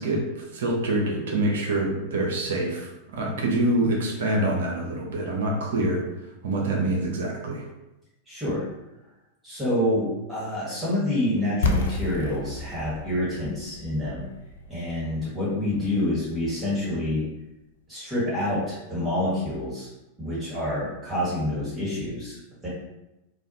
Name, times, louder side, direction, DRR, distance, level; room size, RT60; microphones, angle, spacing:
voice 1, 0.0-6.0 6.4-7.7, right 1 dB, 60° right, -1 dB, 0.5 m, -26 dB
voice 2, 8.2-8.6 9.4-14.2 14.7-17.2 17.9-19.9 20.2-22.4 22.6-22.7, left 1 dB, 10° right, -9 dB, 1.3 m, -27 dB
sound 1, 11.6-17.4, left 3 dB, 60° left, 0.3 m, -32 dB
2.4 x 2.3 x 2.6 m, 0.96 s
figure-of-eight pair, 90°, 0 cm